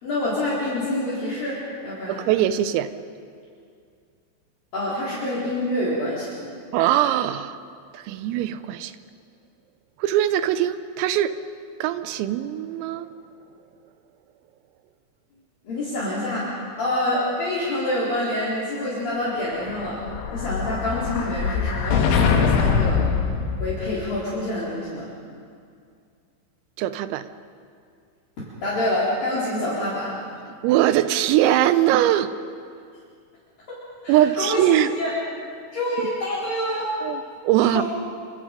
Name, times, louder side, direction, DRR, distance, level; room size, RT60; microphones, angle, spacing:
voice 1, 0.0-2.2 4.7-6.4 15.6-20.0 20.3-23.0 23.6-25.1 28.6-30.2 33.7-35.1 35.7-36.9 37.7-37.8, left 1 dB, 45° left, -8 dB, 5.1 m, -27 dB
voice 2, 2.1-2.9 6.7-7.6 7.9-8.9 10.0-11.4 11.8-13.1 26.8-27.3 30.6-32.3 34.1-34.9 37.0-37.8, right 12 dB, 85° right, 12 dB, 3.5 m, -21 dB
Explosion, 19.5-24.1, left 6 dB, 70° left, 3.9 m, -23 dB
28.0 x 26.0 x 5.2 m, 2.3 s
omnidirectional pair, 6.0 m